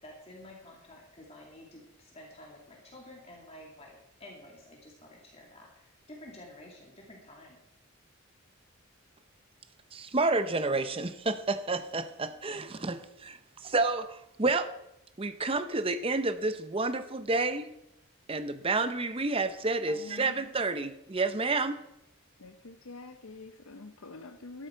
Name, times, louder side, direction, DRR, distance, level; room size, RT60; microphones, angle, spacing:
voice 1, 0.0-7.6, left 1 dB, 30° left, -1 dB, 2.5 m, -51 dB
voice 2, 9.9-13.4 13.6-14.7 15.2-17.7 18.3-21.8, right 3 dB, 25° right, 10 dB, 0.7 m, -30 dB
voice 3, 19.9-20.4 22.4-24.7, left 3 dB, 75° left, 8 dB, 0.8 m, -46 dB
13.5 x 12.5 x 4.6 m, 0.82 s
head